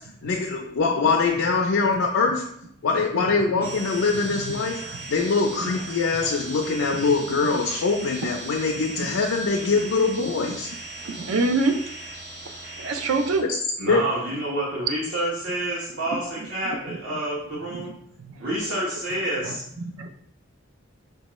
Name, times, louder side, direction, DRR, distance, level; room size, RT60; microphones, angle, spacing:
voice 1, 0.2-2.5 2.8-4.8 5.1-10.7 13.4-13.6 13.9-14.0, left 4 dB, 85° left, 0 dB, 0.4 m, -23 dB
sound 1, 3.6-13.4, right 2 dB, 50° right, 1.4 m, -38 dB
voice 2, 11.0-11.8 12.8-13.4 16.4-16.5 16.9-17.0 17.7-17.9 18.2-18.3 19.4-20.1, right 3 dB, 85° right, 5 dB, 0.5 m, -26 dB
voice 3, 13.8-17.9 18.4-19.6, right 1 dB, 65° right, -6 dB, 1.0 m, -28 dB
5.3 x 2.2 x 3.0 m, 0.69 s
head